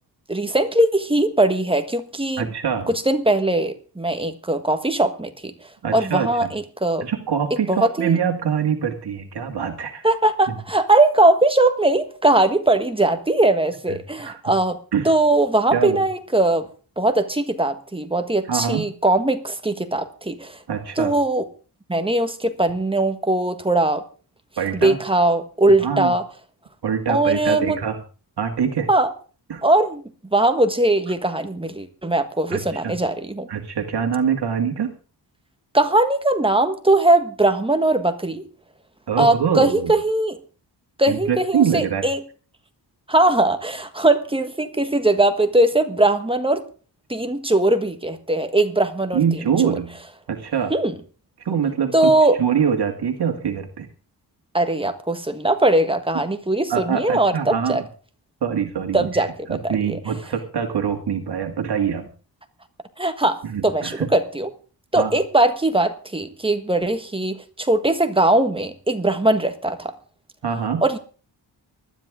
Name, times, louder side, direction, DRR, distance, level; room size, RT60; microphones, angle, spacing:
voice 1, 0.3-2.5 2.9-5.5 5.9-7.0 7.7-8.2 10.0-14.8 15.0-16.7 17.0-20.6 21.0-21.4 21.9-24.0 24.8-26.2 27.1-27.8 28.9-29.1 29.6-30.0 30.3-33.5 35.7-38.4 39.2-40.4 41.0-42.2 43.1-46.6 47.1-49.2 49.6-49.8 50.7-50.9 51.9-52.4 54.5-57.8 58.9-59.3 59.6-60.0 63.0-64.5 64.9-69.9 70.8-71.0, right 2 dB, 15° right, 8 dB, 1.4 m, -20 dB
voice 2, 2.4-2.9 5.8-6.5 7.0-10.1 14.2-14.4 14.9-15.1 15.7-16.0 18.5-18.9 20.7-21.1 24.6-25.0 25.7-26.2 26.8-28.0 28.4-28.9 29.5-29.6 32.5-32.9 33.5-34.9 39.1-39.9 41.1-42.1 49.1-50.0 50.3-50.7 51.4-52.1 52.4-53.9 56.7-57.8 58.4-62.1 63.4-64.1 65.0-65.1 70.4-70.9, right 7 dB, 65° right, 4 dB, 2.2 m, -24 dB
19.5 x 13.0 x 3.7 m, 0.38 s
wide cardioid pair, 160°, 42 cm